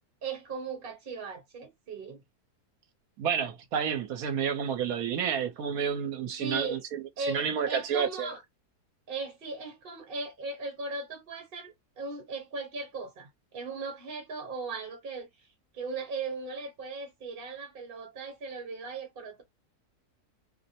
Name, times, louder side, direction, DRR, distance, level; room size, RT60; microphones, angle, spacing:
voice 1, 0.2-2.2 6.4-6.8 7.2-8.4 9.1-15.3 15.7-19.4, right 3 dB, 40° right, 1.2 m, -38 dB
voice 2, 3.2-8.4, right 7 dB, 70° right, 1.1 m, -30 dB
2.8 x 2.1 x 2.7 m
omnidirectional pair, 1.6 m